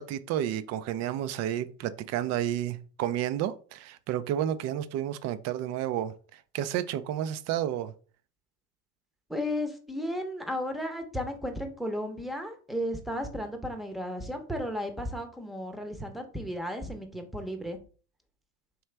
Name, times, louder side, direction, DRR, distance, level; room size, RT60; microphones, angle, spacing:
voice 1, 0.0-7.9, right 11 dB, 40° right, 0.4 m, -31 dB
voice 2, 9.3-17.8, equal, ahead, 0.7 m, -34 dB
4.5 x 3.2 x 3.2 m
hypercardioid pair, 90°, 45 cm